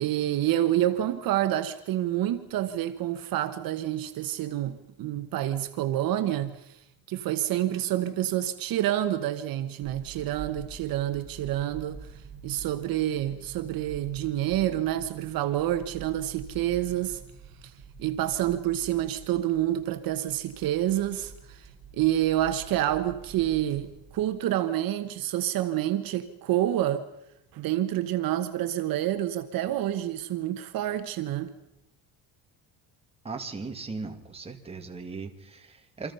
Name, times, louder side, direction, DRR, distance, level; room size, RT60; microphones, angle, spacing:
voice 1, 0.0-12.1 12.4-17.2 17.6-17.7 18.0-21.7 21.9-27.1 27.5-31.5, right 13 dB, 55° right, 1.2 m, -28 dB
sound 1, 9.8-24.2, right 4 dB, 30° right, 4.0 m, -47 dB
voice 2, 33.2-36.1, right 4 dB, 15° right, 2.2 m, -38 dB
28.5 x 25.0 x 5.6 m
cardioid pair, 170°, 40 cm